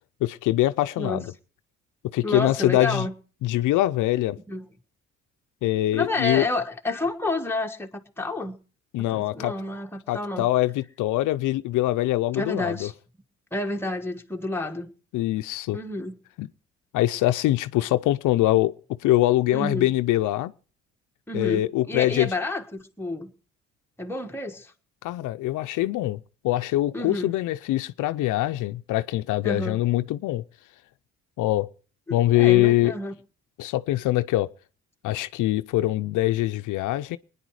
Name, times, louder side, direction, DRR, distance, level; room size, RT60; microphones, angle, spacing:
voice 1, 0.2-1.3 2.1-3.1 3.4-4.4 5.6-6.4 8.9-9.5 10.1-12.9 15.1-15.8 16.4-16.5 16.9-18.7 19.0-20.5 21.3-22.3 25.0-30.4 31.4-31.7 32.1-32.9 33.6-34.5 35.0-37.2, left 16 dB, 85° left, 0.6 m, -23 dB
voice 2, 2.2-3.1 4.5-4.7 5.9-8.6 9.0-10.5 12.3-12.9 13.5-14.9 15.7-16.2 19.5-19.9 21.3-23.3 24.0-24.7 26.9-27.3 29.4-29.8 32.1-33.1, left 2 dB, 10° left, 1.5 m, -30 dB
21.0 x 9.9 x 4.8 m
cardioid pair, 90°, 30 cm